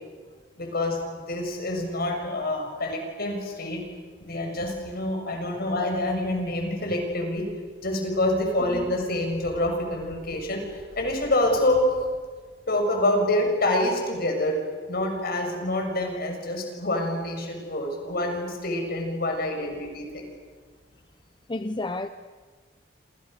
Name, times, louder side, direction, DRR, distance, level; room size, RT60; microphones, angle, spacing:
voice 1, 0.6-3.8 4.2-7.5 7.8-11.9 12.7-14.6 14.9-20.3, left 1 dB, 55° left, 3 dB, 6.7 m, -27 dB
voice 2, 21.5-22.1, left 2 dB, 25° left, 10 dB, 0.8 m, -30 dB
28.5 x 28.0 x 6.8 m, 1.5 s
head